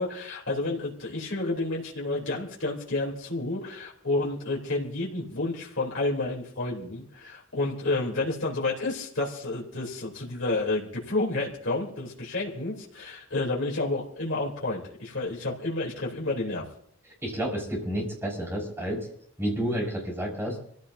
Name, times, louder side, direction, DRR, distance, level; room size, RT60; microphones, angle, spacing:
voice 1, 0.0-16.6, left 2 dB, 65° left, -4 dB, 3.8 m, -30 dB
voice 2, 17.2-19.1 19.4-20.6, equal, 10° right, -3 dB, 5.8 m, -30 dB
27.0 x 16.0 x 2.8 m, 0.63 s
head